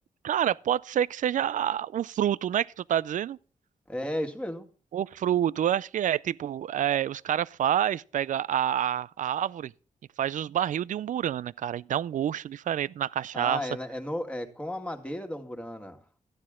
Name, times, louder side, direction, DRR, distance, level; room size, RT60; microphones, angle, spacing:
voice 1, 0.2-3.4 4.9-9.7 10.2-13.7, right 10 dB, 70° right, 0.4 m, -28 dB
voice 2, 3.9-4.7 13.3-16.0, left 1 dB, 10° left, 2.0 m, -34 dB
14.0 x 9.7 x 3.6 m
wide cardioid pair, 105°, 13 cm